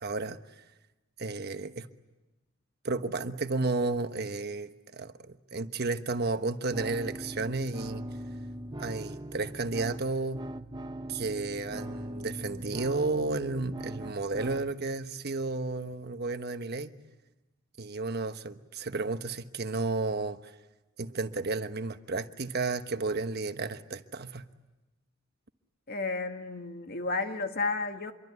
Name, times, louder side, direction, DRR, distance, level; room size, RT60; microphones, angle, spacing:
voice 1, 0.0-0.4 1.2-1.9 2.8-8.0 8.8-10.4 11.1-16.9 17.8-20.4 21.0-24.4, right 3 dB, 55° right, 9 dB, 1.2 m, -32 dB
sound 1, 6.7-14.7, right 1 dB, 20° right, 0.9 m, -40 dB
voice 2, 25.9-28.1, left 3 dB, 50° left, 6 dB, 1.8 m, -32 dB
26.5 x 23.5 x 9.5 m, 1.1 s
head